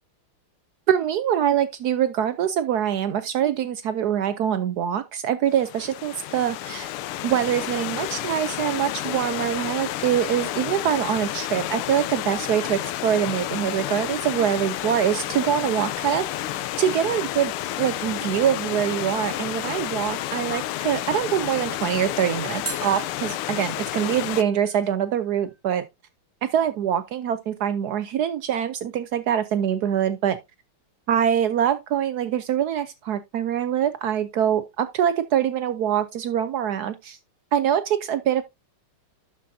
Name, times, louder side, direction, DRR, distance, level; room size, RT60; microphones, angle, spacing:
voice 1, 0.9-6.9 7.2-16.3 16.8-17.5 17.8-25.9 26.4-30.4 31.1-37.2 37.5-38.4, right 9 dB, 80° right, 0.9 m, -24 dB
Stream / Liquid, 5.5-24.4, left 14 dB, 85° left, 1.5 m, -30 dB
sound 1, 22.7-25.6, right 5 dB, 55° right, 0.6 m, -42 dB
11.5 x 6.1 x 2.7 m
omnidirectional pair, 2.3 m